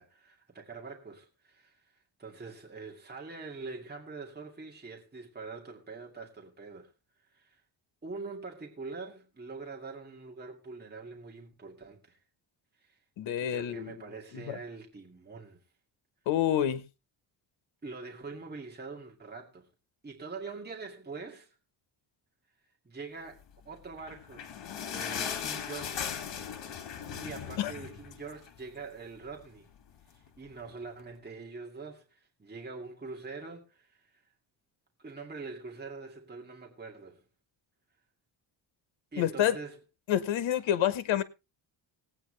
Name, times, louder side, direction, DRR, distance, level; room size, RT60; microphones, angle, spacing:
voice 1, 0.0-6.9 7.2-7.6 8.0-12.2 12.8-13.0 13.4-15.6 17.8-19.7 20.0-21.6 22.8-24.5 24.9-26.1 27.1-29.7 30.1-34.2 35.0-37.2 39.1-39.8, right 4 dB, 20° right, 2.3 m, -44 dB
voice 2, 13.2-13.9 14.5-14.6 16.3-16.8 27.6-27.7 39.2-39.5 40.1-41.2, left 11 dB, 90° left, 1.2 m, -28 dB
sound 1, 23.9-28.7 29.0-29.1 29.4-29.6 30.3-30.4, left 8 dB, 70° left, 2.2 m, -38 dB
18.5 x 9.0 x 3.2 m
cardioid pair, 110°, 45 cm